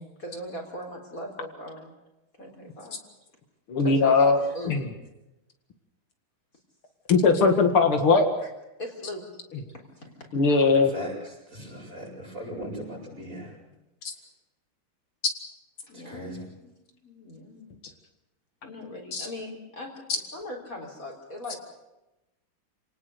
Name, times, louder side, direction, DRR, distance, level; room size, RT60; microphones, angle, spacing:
voice 1, 0.2-1.9 2.4-3.0 3.8-4.8 8.4-8.5 8.8-9.3 9.7-10.4 15.8-17.8 18.6-21.6, left 1 dB, 40° left, 1 dB, 4.1 m, -40 dB
voice 2, 3.7-4.4 4.7-4.9 7.1-8.3 10.3-10.9 19.1-19.3, left 4 dB, 75° left, 5 dB, 2.9 m, -20 dB
voice 3, 10.6-13.6 15.9-16.5, equal, 35° right, -2 dB, 8.2 m, -39 dB
28.0 x 19.0 x 6.8 m, 0.96 s
omnidirectional pair, 2.4 m